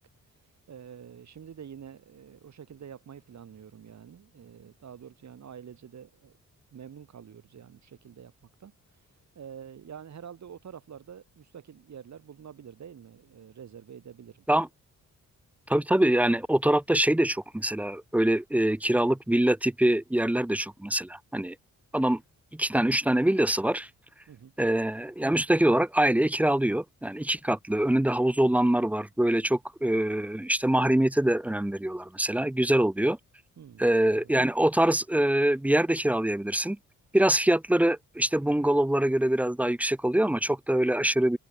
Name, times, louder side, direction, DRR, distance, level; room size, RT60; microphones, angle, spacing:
voice 1, 0.7-6.4 6.7-8.3 8.6-14.4 24.3-24.5 33.6-34.3, right 8 dB, 65° right, 6.1 m, -47 dB
voice 2, 15.7-21.5 21.9-22.2 22.5-23.9 24.6-33.2 33.8-36.8 37.1-41.4, right 1 dB, 5° right, 0.5 m, -24 dB
cardioid pair, 90°, 30 cm